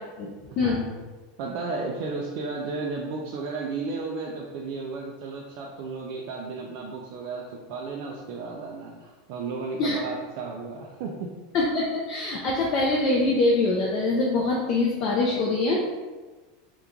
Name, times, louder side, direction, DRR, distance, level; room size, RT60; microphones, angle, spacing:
voice 1, 0.6-1.0 1.4-11.1, right 4 dB, 55° right, -1 dB, 0.3 m, -33 dB
voice 2, 11.5-15.8, left 2 dB, 35° left, -3 dB, 0.4 m, -24 dB
2.9 x 2.2 x 3.7 m, 1.3 s
supercardioid pair, 165°, 0 cm